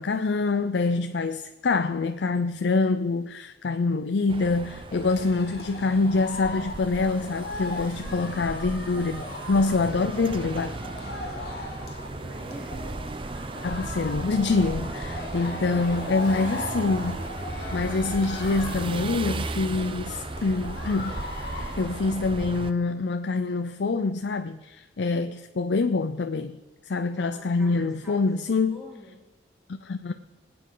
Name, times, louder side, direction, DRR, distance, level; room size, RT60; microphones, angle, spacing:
voice 1, 0.0-10.7 13.6-17.2 17.7-21.2 21.8-26.6 26.9-28.8 29.7-30.1, left 3 dB, 75° left, 0.5 m, -25 dB
sound 1, 4.3-22.7, right 2 dB, 30° right, 0.5 m, -36 dB
sound 2, 4.9-22.1, left 2 dB, 55° left, 2.1 m, -39 dB
voice 2, 8.0-8.5 12.1-13.1 15.4-15.9 27.1-29.2, equal, ahead, 3.7 m, -47 dB
21.0 x 8.7 x 3.9 m
head